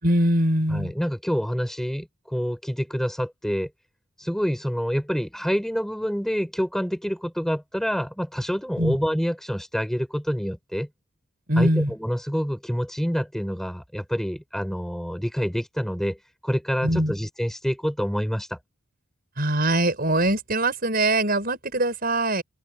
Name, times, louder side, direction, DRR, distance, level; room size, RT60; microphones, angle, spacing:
voice 1, 0.0-0.9 8.8-9.0 11.5-11.9 16.8-17.1 19.4-22.4, right 1 dB, 45° right, 6.2 m, -22 dB
voice 2, 0.7-3.7 4.2-10.9 11.6-16.2 16.4-18.6, equal, ahead, 6.4 m, -27 dB
open air
head